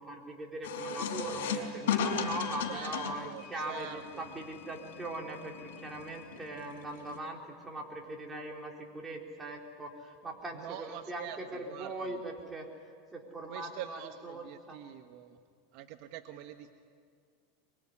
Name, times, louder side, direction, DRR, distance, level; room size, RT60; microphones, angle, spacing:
voice 1, 0.0-12.7 13.1-14.8, right 2 dB, 10° right, -1 dB, 3.9 m, -41 dB
sound 1, 0.6-7.2, left 6 dB, 80° left, 4.6 m, -36 dB
voice 2, 2.7-4.2 10.5-12.2 13.5-15.4 15.7-16.7, right 11 dB, 55° right, 6 dB, 1.4 m, -45 dB
23.5 x 23.5 x 9.8 m, 2.2 s
supercardioid pair, 145°, 0 cm